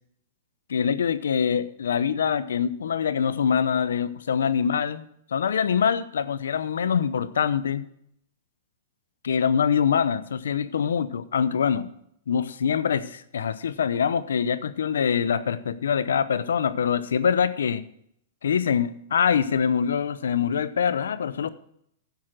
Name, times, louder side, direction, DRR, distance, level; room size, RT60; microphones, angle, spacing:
voice 1, 0.7-5.1 5.3-7.9 9.2-11.9 12.3-17.8 18.4-21.5, left 7 dB, 85° left, 16 dB, 0.7 m, -24 dB
10.5 x 7.6 x 6.1 m, 0.70 s
hypercardioid pair, 140°, 0 cm